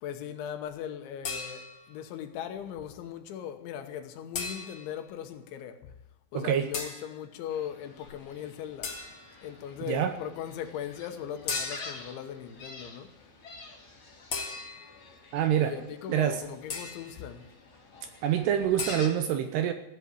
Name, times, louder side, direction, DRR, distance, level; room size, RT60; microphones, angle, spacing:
voice 1, 0.0-5.9 6.3-8.9 9.4-13.1 15.6-17.5, left 9 dB, 80° left, 3.5 m, -39 dB
sound 1, 1.2-1.9 4.3-5.0 6.7-7.1 8.8-9.4 11.5-12.1 14.3-15.0 16.7-17.2 18.8-19.1, left 4 dB, 65° left, 1.2 m, -36 dB
voice 2, 6.3-6.7 9.9-10.1 15.3-15.7 16.1-16.4 18.2-19.7, right 10 dB, 80° right, 2.6 m, -26 dB
Gull seagull, 7.5-19.1, left 3 dB, 35° left, 2.4 m, -49 dB
15.5 x 7.9 x 9.8 m
omnidirectional pair, 5.4 m